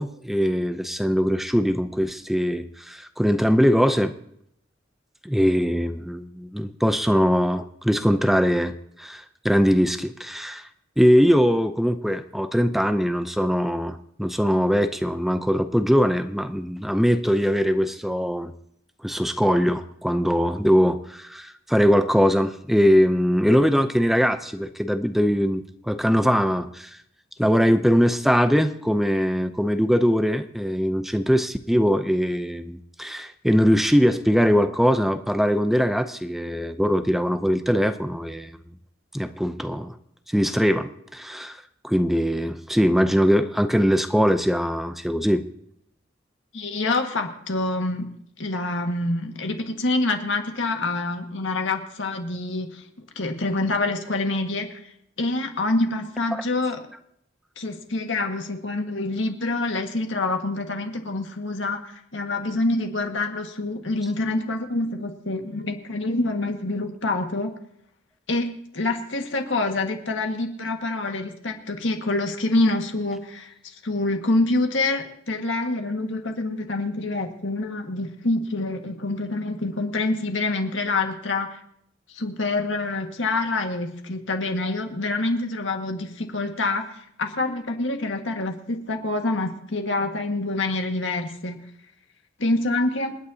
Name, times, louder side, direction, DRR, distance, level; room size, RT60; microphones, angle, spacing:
voice 1, 0.0-4.1 5.2-8.7 9.0-10.7 11.0-18.5 19.0-26.9 27.4-38.6 39.1-40.0 40.3-41.6 41.8-45.4 56.3-56.4, equal, ahead, 9 dB, 0.6 m, -21 dB
voice 2, 46.5-48.1 48.4-52.8 53.1-54.8 55.2-56.8 57.6-61.8 62.1-67.5 68.3-68.5 68.7-81.6 82.1-91.6 92.4-93.2, left 2 dB, 90° left, 4 dB, 1.7 m, -26 dB
28.5 x 9.6 x 2.8 m, 0.71 s
head